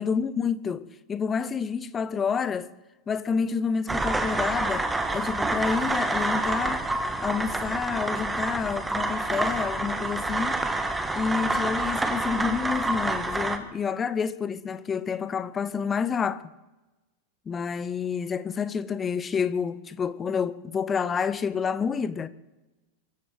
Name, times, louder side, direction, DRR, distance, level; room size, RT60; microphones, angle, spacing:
voice 1, 0.0-2.7 3.1-6.9 7.2-10.6 11.1-16.4 17.5-22.3, left 6 dB, 20° left, 0.8 m, -29 dB
sound 1, 3.9-13.6, right 2 dB, 10° right, 1.4 m, -28 dB
23.5 x 12.0 x 4.7 m
figure-of-eight pair, 90°, 0 cm